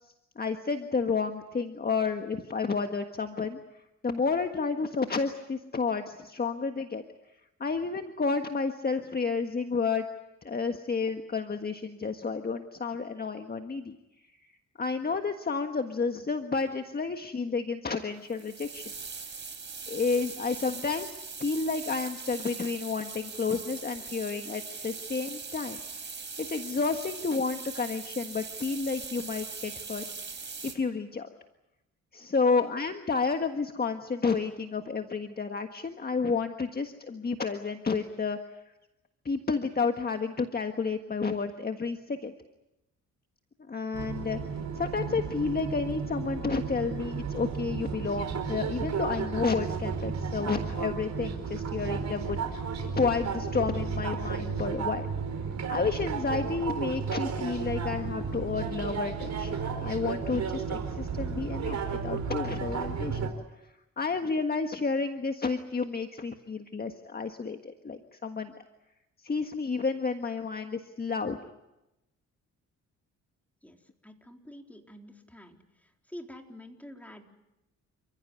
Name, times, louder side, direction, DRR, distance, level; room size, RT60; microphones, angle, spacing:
voice 1, 0.0-7.0 7.6-10.0 10.4-14.0 14.4-14.5 14.8-18.9 19.9-25.8 26.4-31.3 32.1-38.6 39.2-42.3 43.7-44.4 44.7-55.1 55.7-59.5 59.8-63.2 63.6-68.5 69.2-71.4, left 4 dB, 30° left, 6 dB, 1.6 m, -31 dB
sound 1, 18.3-30.7, right 5 dB, 35° right, 4.4 m, -41 dB
sound 2, 43.9-63.3, right 5 dB, 60° right, 5.1 m, -33 dB
voice 2, 74.0-75.6 76.1-77.2, left 1 dB, 5° left, 2 dB, 3.9 m, -47 dB
29.5 x 15.5 x 9.7 m, 0.93 s
cardioid pair, 85°, 31 cm